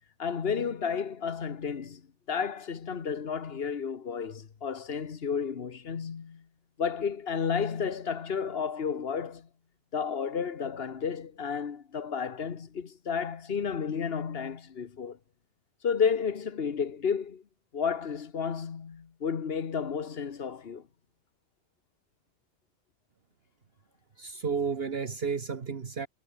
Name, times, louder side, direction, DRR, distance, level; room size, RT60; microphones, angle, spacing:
voice 1, 0.2-2.0 2.3-6.4 6.8-9.5 9.9-15.2 15.8-17.4 17.7-20.8, left 6 dB, 65° left, 1.5 m, -32 dB
voice 2, 24.2-26.1, right 5 dB, 65° right, 1.6 m, -32 dB
omnidirectional pair, 1.1 m